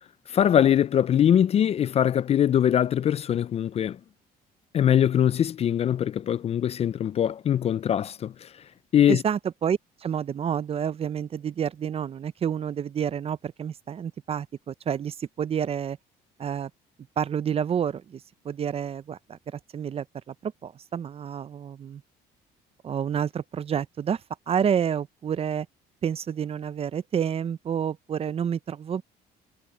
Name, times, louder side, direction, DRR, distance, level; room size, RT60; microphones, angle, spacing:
voice 1, 0.3-4.0 4.7-8.5 8.9-9.2, left 10 dB, 40° left, 0.4 m, -22 dB
voice 2, 9.1-16.0 16.4-16.7 17.2-22.0 22.8-24.2 24.5-25.7 26.0-29.0, right 8 dB, 35° right, 0.5 m, -29 dB
cardioid pair, 110°, 17 cm